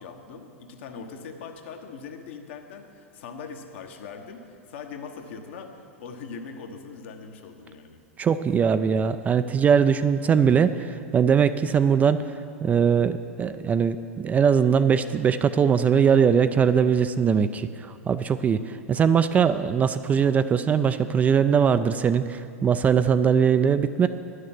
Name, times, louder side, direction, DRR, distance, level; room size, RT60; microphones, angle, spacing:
voice 1, 0.0-8.0, left 5 dB, 60° left, 5 dB, 1.1 m, -41 dB
voice 2, 8.2-12.2 12.6-17.7 18.1-24.1, right 7 dB, 20° right, 11 dB, 0.3 m, -21 dB
10.5 x 6.5 x 7.5 m, 2.4 s
figure-of-eight pair, 95°, 7 cm